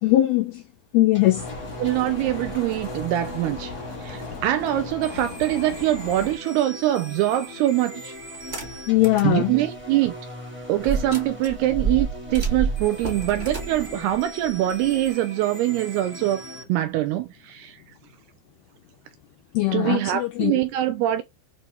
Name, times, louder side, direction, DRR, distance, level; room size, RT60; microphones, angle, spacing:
voice 1, 0.0-0.6 0.9-1.5 8.9-9.5 19.5-20.6, left 16 dB, 80° left, 2.2 m, -20 dB
sound 1, 1.1-16.6, left 1 dB, 10° right, 0.7 m, -39 dB
sound 2, 1.4-6.4, left 4 dB, 50° left, 1.1 m, -37 dB
voice 2, 1.8-3.7 4.0-8.2 9.2-10.1 10.7-16.4 16.7-17.8 19.7-21.2, right 14 dB, 85° right, 2.5 m, -24 dB
sound 3, 8.3-9.3 9.8-9.9 10.8-15.1, right 5 dB, 25° right, 1.3 m, -29 dB
8.2 x 3.1 x 5.6 m
omnidirectional pair, 5.2 m